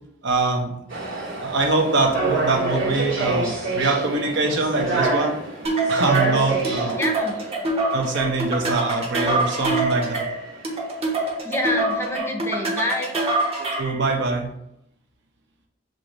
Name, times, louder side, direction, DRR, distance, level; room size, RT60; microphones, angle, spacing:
voice 1, 0.2-0.7 1.4-5.4 5.9-7.0 7.9-10.3 13.6-14.5, right 3 dB, 65° right, 1 dB, 0.8 m, -23 dB
sound 1, 0.9-11.3, right 3 dB, 85° right, 1.7 m, -28 dB
sound 2, 5.6-14.0, right 2 dB, 35° right, 0.9 m, -25 dB
voice 2, 6.9-7.4 11.4-13.2, left 1 dB, 15° left, 2 dB, 0.6 m, -27 dB
6.6 x 2.5 x 3.1 m, 0.79 s
head